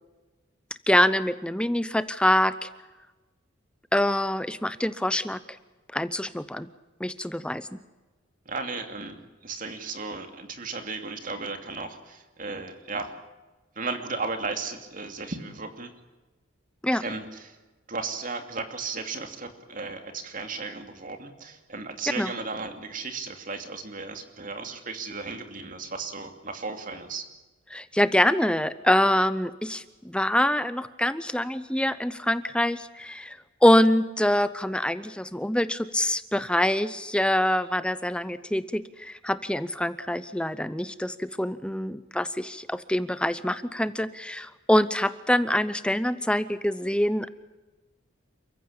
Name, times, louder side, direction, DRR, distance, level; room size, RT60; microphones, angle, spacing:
voice 1, 0.9-2.7 3.9-5.4 5.9-6.7 7.0-7.8 16.8-17.0 22.2-22.3 27.7-47.3, left 1 dB, 5° left, 13 dB, 0.7 m, -25 dB
voice 2, 8.5-9.2 9.4-13.1 13.8-15.9 16.9-17.6 17.9-27.3, right 4 dB, 40° right, 6 dB, 2.7 m, -35 dB
29.0 x 15.0 x 8.8 m, 1.2 s
head